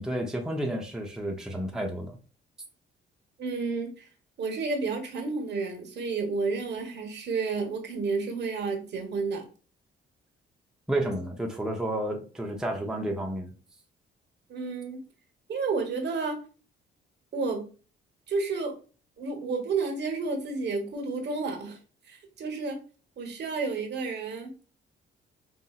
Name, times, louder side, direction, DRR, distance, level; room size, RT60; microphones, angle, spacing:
voice 1, 0.0-2.2 10.9-13.5, right 1 dB, 5° right, 0.7 m, -31 dB
voice 2, 3.4-4.1 4.4-9.5 14.5-15.0 15.5-16.4 17.3-17.7 18.3-18.7 19.2-21.8 22.1-22.8 23.2-24.5, right 4 dB, 60° right, 1.2 m, -31 dB
5.5 x 2.6 x 2.4 m
cardioid pair, 90°, 20 cm